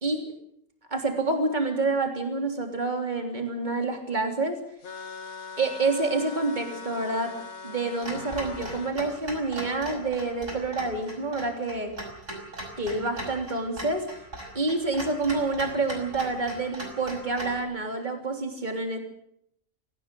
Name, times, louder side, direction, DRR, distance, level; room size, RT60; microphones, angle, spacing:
voice 1, 0.9-4.6 5.6-7.3 7.6-11.9 12.8-14.1 14.6-19.0, right 3 dB, 30° right, 4 dB, 3.5 m, -28 dB
sound 1, 4.8-8.9, left 4 dB, 80° left, 2.0 m, -41 dB
Clock, 8.0-17.6, right 1 dB, 60° right, 6.0 m, -39 dB
23.5 x 17.0 x 7.7 m, 0.71 s
omnidirectional pair, 1.5 m